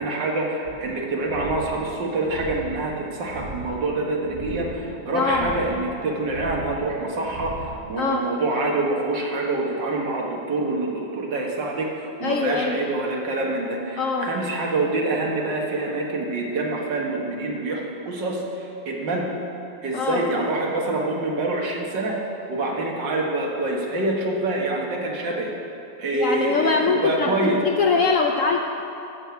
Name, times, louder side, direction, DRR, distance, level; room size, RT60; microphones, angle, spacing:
voice 1, 0.0-19.3 19.8-22.2 22.5-25.5 26.0-27.6, right 2 dB, 80° right, -1 dB, 2.1 m, -26 dB
sound 1, 0.6-8.0, right 2 dB, 30° right, 1.1 m, -39 dB
voice 2, 5.1-5.5 8.0-8.3 12.2-12.8 14.0-14.3 19.9-20.2 26.1-28.6, left 4 dB, 65° left, 3 dB, 0.8 m, -23 dB
12.5 x 5.0 x 8.1 m, 2.8 s
omnidirectional pair, 1.9 m